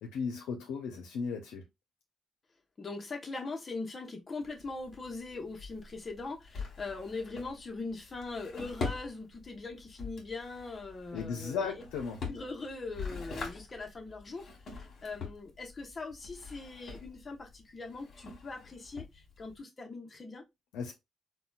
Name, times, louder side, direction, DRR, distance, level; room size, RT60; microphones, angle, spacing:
voice 1, 0.0-1.6 11.1-12.2 20.7-20.9, left 5 dB, 90° left, 0.6 m, -36 dB
voice 2, 2.8-11.7 12.3-20.4, left 3 dB, 35° left, 1.0 m, -41 dB
Drawer open or close, 4.4-19.6, left 4 dB, 55° left, 1.4 m, -44 dB
3.8 x 2.3 x 2.3 m
cardioid pair, 90°, 0 cm